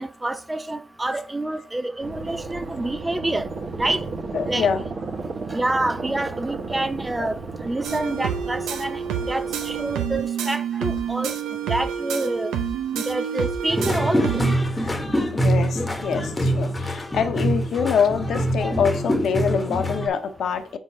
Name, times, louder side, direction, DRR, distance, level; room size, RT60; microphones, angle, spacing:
voice 1, 0.0-3.5 3.8-4.0 4.5-4.7 5.5-9.0 9.3-11.3 11.7-12.5 12.9-14.4, right 2 dB, 15° right, 0.6 m, -27 dB
sound 1, 2.0-10.0, right 3 dB, 55° right, 1.3 m, -34 dB
voice 2, 4.3-4.8 7.2-7.3 14.7-15.0 15.3-20.8, left 6 dB, 70° left, 0.9 m, -25 dB
sound 2, 7.8-14.5, right 8 dB, 85° right, 0.7 m, -28 dB
sound 3, 13.7-20.1, equal, 20° left, 1.2 m, -24 dB
4.8 x 3.9 x 5.5 m
supercardioid pair, 55°, 0 cm